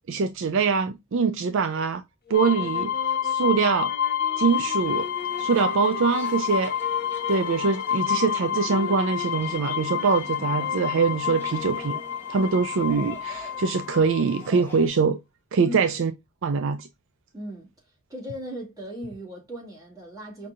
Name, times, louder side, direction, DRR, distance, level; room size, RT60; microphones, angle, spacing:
voice 1, 0.1-2.0 2.3-2.9 3.2-3.9 4.4-5.1 5.4-6.7 7.3-12.0 12.3-15.2 15.5-16.1 16.4-16.9, right 5 dB, 60° right, 0.4 m, -23 dB
sound 1, 2.3-14.8, left 9 dB, 65° left, 0.6 m, -29 dB
sound 2, 2.3-12.2, left 3 dB, 45° left, 1.2 m, -40 dB
sound 3, 4.4-14.9, equal, 10° left, 1.1 m, -47 dB
voice 2, 15.6-15.9 17.3-17.7 18.1-20.5, equal, 15° right, 2.0 m, -37 dB
5.3 x 2.7 x 2.4 m
head